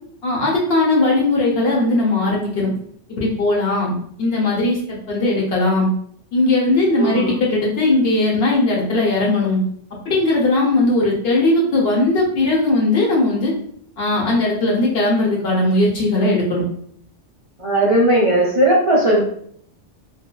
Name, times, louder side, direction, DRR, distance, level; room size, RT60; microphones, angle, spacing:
voice 1, 0.2-2.7 3.1-5.9 6.3-9.6 10.0-13.5 14.0-16.6, left 2 dB, 60° left, -3 dB, 1.0 m, -18 dB
voice 2, 7.0-7.3 10.8-11.1 17.6-19.2, right 1 dB, 40° right, -7 dB, 0.5 m, -17 dB
3.2 x 2.1 x 2.2 m, 0.63 s
omnidirectional pair, 1.2 m